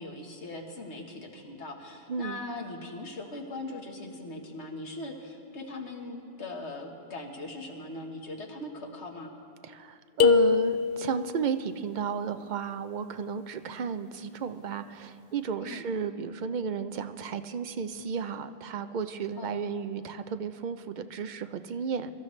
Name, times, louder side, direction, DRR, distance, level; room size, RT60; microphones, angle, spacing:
voice 1, 0.0-9.3 15.6-15.8 19.4-19.5, left 2 dB, 90° left, 2 dB, 1.7 m, -40 dB
voice 2, 2.1-2.4 9.6-22.1, right 6 dB, 55° right, 10 dB, 0.6 m, -33 dB
sound 1, 10.2-11.3, left 5 dB, 65° left, 0.7 m, -22 dB
23.5 x 13.0 x 3.2 m, 2.6 s
omnidirectional pair, 1.1 m